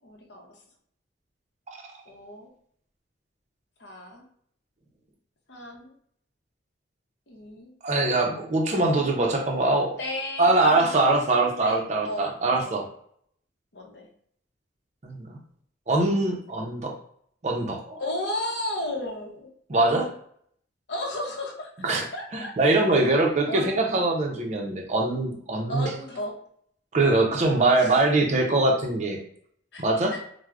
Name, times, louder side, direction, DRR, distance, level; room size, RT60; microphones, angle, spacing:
voice 1, 0.0-0.6 2.1-2.5 3.8-4.2 5.5-5.9 7.3-7.7 10.0-11.3 11.6-12.7 13.7-14.1 18.0-19.5 20.9-21.7 22.1-22.8 23.2-23.8 25.7-26.3 27.0-28.0 29.7-29.8 30.1-30.2, left 1 dB, 65° left, 0 dB, 0.7 m, -35 dB
voice 2, 7.8-10.0 10.4-12.8 15.0-15.4 15.9-16.9 17.4-18.0 19.7-20.1 21.8-22.0 22.3-25.9 26.9-29.2 29.8-30.1, right 2 dB, 35° right, 1 dB, 0.5 m, -23 dB
4.5 x 2.0 x 2.3 m, 0.65 s
head